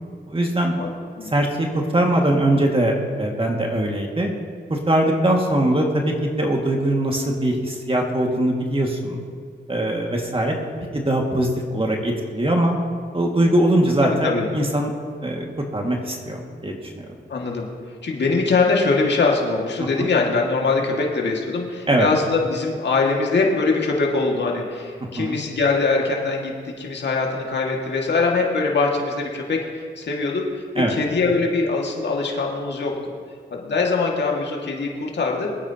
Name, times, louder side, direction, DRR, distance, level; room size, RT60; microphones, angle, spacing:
voice 1, 0.3-0.7 1.3-1.5 1.7-4.3 4.7-9.2 9.7-10.6 10.9-12.8 13.1-14.9 15.2-15.5 15.7-17.0 19.8-20.1 21.9-22.1 25.2-25.4 30.8-30.9, right 1 dB, 30° right, 0 dB, 2.1 m, -21 dB
voice 2, 14.0-14.5 17.3-17.7 18.0-29.6 30.0-30.4 30.9-32.9 33.5-35.5, left 3 dB, 60° left, -1 dB, 2.1 m, -22 dB
22.0 x 9.1 x 2.9 m, 2.1 s
supercardioid pair, 45°, 20 cm